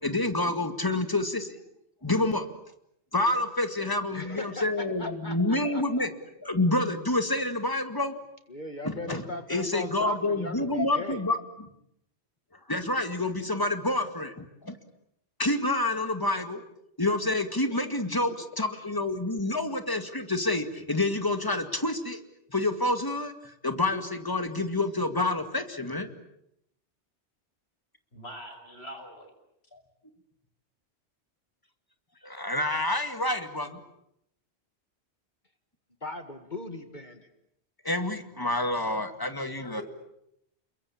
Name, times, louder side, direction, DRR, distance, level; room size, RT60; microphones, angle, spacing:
voice 1, 0.0-1.6 2.0-2.5 3.1-6.1 6.4-8.1 8.8-9.2 9.5-11.7 12.7-14.8 15.4-16.6 17.0-22.2 22.5-26.1 29.7-29.8 32.2-33.8 37.8-39.8, left 2 dB, 20° left, 8 dB, 2.2 m, -28 dB
voice 2, 4.1-6.1 8.5-11.2 36.0-37.3, left 2 dB, 45° left, 8 dB, 2.0 m, -39 dB
voice 3, 17.5-17.9 28.1-29.3 39.6-39.8, equal, 70° left, 6 dB, 5.7 m, -44 dB
28.5 x 23.0 x 8.7 m, 0.77 s
omnidirectional pair, 1.1 m